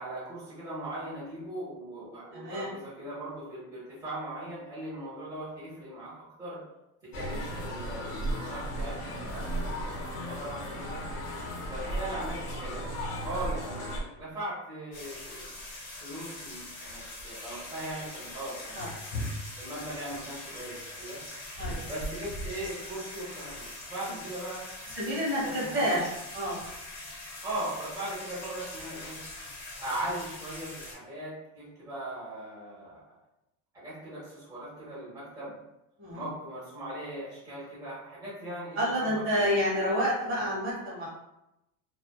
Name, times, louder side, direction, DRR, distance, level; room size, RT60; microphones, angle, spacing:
voice 1, 0.0-6.6 7.0-9.8 10.2-11.0 11.7-15.5 16.0-18.9 19.6-21.2 21.9-24.7 25.4-26.0 27.4-29.2 29.8-33.1 33.7-35.6 36.1-39.1 39.8-40.0, right 1 dB, 10° right, -9 dB, 0.8 m, -39 dB
voice 2, 2.3-2.7 9.6-9.7 18.7-18.9 21.6-21.9 24.9-26.6 36.0-36.2 38.8-41.1, equal, 35° right, -6 dB, 1.0 m, -29 dB
sound 1, 7.1-14.0, equal, 85° left, 0.7 m, -35 dB
sound 2, 14.9-30.9, left 1 dB, 40° left, 0.9 m, -41 dB
2.3 x 2.3 x 2.2 m, 0.89 s
cardioid pair, 150°, 38 cm